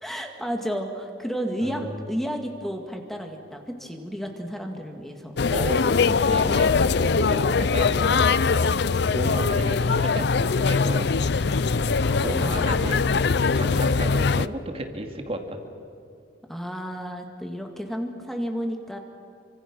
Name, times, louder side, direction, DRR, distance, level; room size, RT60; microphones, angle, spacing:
voice 1, 0.0-5.4 12.0-12.9 16.5-19.0, equal, ahead, 3 dB, 2.2 m, -32 dB
voice 2, 1.6-2.0 5.5-6.7 7.0-8.2 9.1-11.1 12.2-13.0 13.5-15.6, right 1 dB, 30° right, 4 dB, 2.5 m, -33 dB
sound 1, 5.4-14.5, left 4 dB, 60° left, 0.5 m, -22 dB
28.5 x 25.0 x 6.3 m, 2.6 s
head